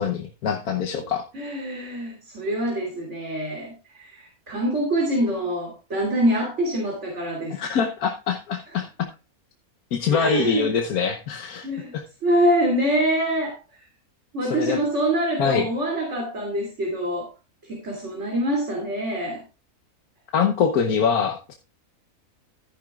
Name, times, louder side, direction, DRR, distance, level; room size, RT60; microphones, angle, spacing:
voice 1, 0.0-1.3 7.5-8.9 9.9-12.0 14.5-14.8 15.4-15.7 20.3-21.5, left 6 dB, 80° left, 4 dB, 1.5 m, -24 dB
voice 2, 1.3-7.6 10.1-10.7 11.6-11.9 12.2-13.8 14.3-17.3 17.6-19.4, right 1 dB, 50° right, 0 dB, 3.2 m, -25 dB
13.5 x 10.0 x 2.4 m, 0.31 s
omnidirectional pair, 1.5 m